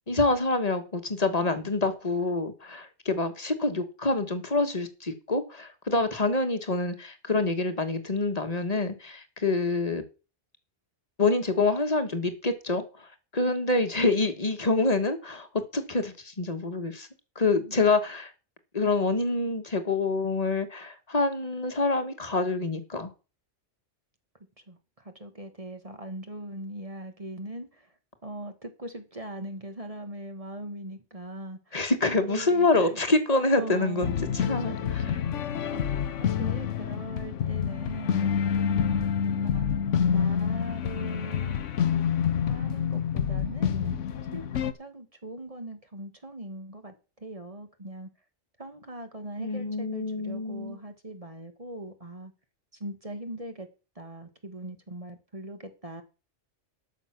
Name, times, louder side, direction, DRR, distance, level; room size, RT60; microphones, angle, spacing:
voice 1, 0.1-10.0 11.2-15.5 15.7-17.1 17.3-18.3 18.7-23.1 31.7-35.0 49.4-50.8, left 3 dB, 35° left, 1.6 m, -26 dB
voice 2, 24.7-27.9 28.2-33.0 33.6-35.9 36.2-38.3 38.6-39.7 40.1-41.6 42.3-48.1 48.6-52.3 52.7-53.7 53.9-56.0, right 1 dB, 30° right, 1.6 m, -40 dB
sound 1, 34.0-44.7, left 8 dB, 85° left, 1.2 m, -27 dB
12.5 x 6.7 x 6.0 m
omnidirectional pair, 1.2 m